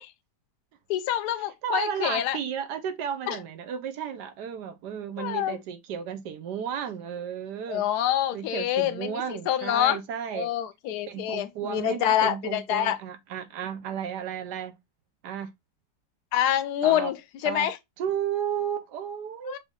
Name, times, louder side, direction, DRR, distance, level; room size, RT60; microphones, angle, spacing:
voice 1, 0.9-2.4 3.3-3.4 5.2-5.6 7.7-10.0 10.3-13.0 16.3-17.2 17.4-17.8 19.4-19.6, left 11 dB, 70° left, 1.1 m, -26 dB
voice 2, 1.6-7.8 8.3-10.5 11.1-14.7 15.2-15.5 16.8-17.1 17.4-17.7 18.0-19.6, right 8 dB, 75° right, 1.2 m, -33 dB
5.1 x 2.6 x 3.6 m
omnidirectional pair, 1.9 m